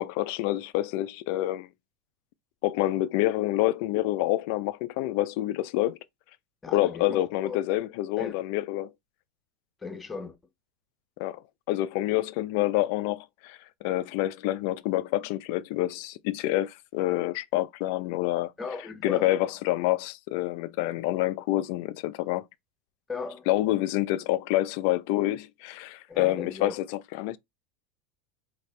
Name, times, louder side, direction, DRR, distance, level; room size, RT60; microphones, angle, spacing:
voice 1, 0.0-1.7 2.6-6.0 6.7-8.9 11.2-11.4 11.7-18.5 19.0-22.4 23.5-27.4, left 16 dB, 65° left, 0.4 m, -27 dB
voice 2, 6.6-7.6 8.2-8.4 9.8-10.3 18.6-19.3 23.1-23.5 26.1-26.8, left 4 dB, 20° left, 1.1 m, -37 dB
4.0 x 2.8 x 3.2 m
hypercardioid pair, 100°, 0 cm